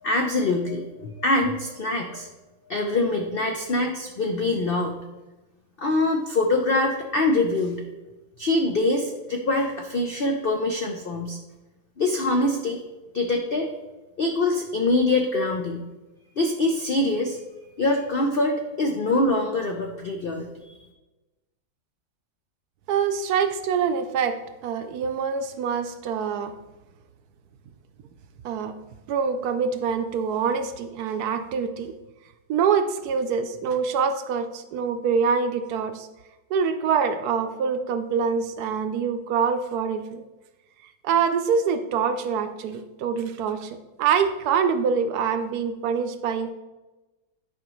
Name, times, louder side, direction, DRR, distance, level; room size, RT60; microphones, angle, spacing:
voice 1, 0.0-2.3 2.7-5.0 5.8-7.8 8.4-11.4 12.0-12.8 13.1-13.7 14.2-15.9 16.4-17.4 17.8-20.8, left 2 dB, 70° left, 3 dB, 0.5 m, -24 dB
voice 2, 22.9-24.4 24.6-26.5 28.4-28.7 29.1-31.9 32.5-36.1 36.5-40.2 41.0-46.5, right 6 dB, 70° right, 8 dB, 1.0 m, -25 dB
10.5 x 5.1 x 3.1 m, 1.1 s
omnidirectional pair, 1.8 m